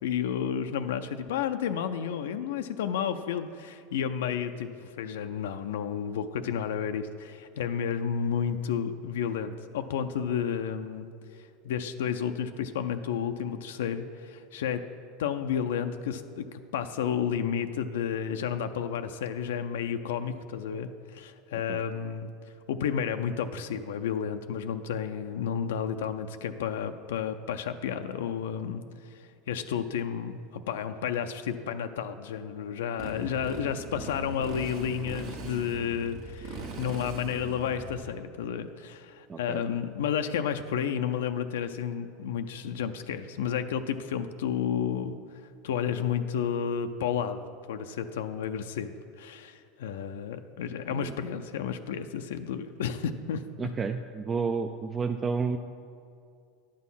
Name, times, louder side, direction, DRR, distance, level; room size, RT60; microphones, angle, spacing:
voice 1, 0.0-11.1 11.6-14.8 15.2-22.3 22.7-28.8 29.1-45.2 45.6-48.9 49.2-53.7, left 8 dB, 85° left, 8 dB, 0.4 m, -31 dB
Motorcycle, 33.0-38.1, right 3 dB, 65° right, 1.4 m, -40 dB
voice 2, 39.3-39.6 50.9-51.1 53.6-55.6, right 5 dB, 25° right, 6 dB, 0.4 m, -31 dB
10.5 x 6.3 x 5.6 m, 2.4 s
supercardioid pair, 115°, 0 cm